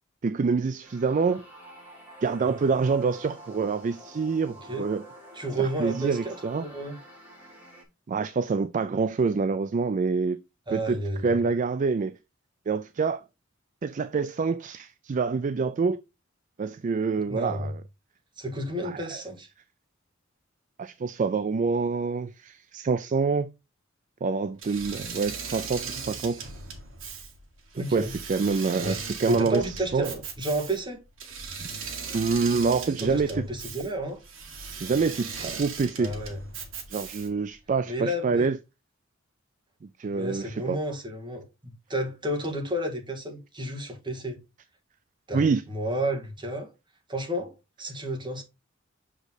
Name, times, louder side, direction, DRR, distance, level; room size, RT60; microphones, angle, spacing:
voice 1, 0.2-1.4 2.2-5.0 5.6-6.7 8.1-10.4 10.7-12.2 12.7-13.2 13.8-16.0 16.6-17.8 18.8-19.2 20.8-23.5 24.2-26.5 27.8-29.7 29.9-30.1 31.6-31.7 32.1-33.4 34.8-36.1 36.9-38.6 39.8-40.8 45.3-45.6, right 4 dB, 40° right, 0.4 m, -26 dB
sound 1, 0.8-7.8, right 1 dB, 10° right, 2.9 m, -48 dB
voice 2, 5.3-7.0 10.7-11.4 17.3-17.7 18.4-19.5 27.7-28.1 28.8-29.0 29.3-31.0 33.0-34.2 36.0-36.4 37.9-38.5 40.1-44.4 45.3-46.7 47.1-48.4, right 1 dB, 25° right, 1.9 m, -31 dB
Engine / Mechanisms, 24.6-37.5, right 5 dB, 75° right, 1.9 m, -38 dB
6.4 x 5.1 x 4.0 m
head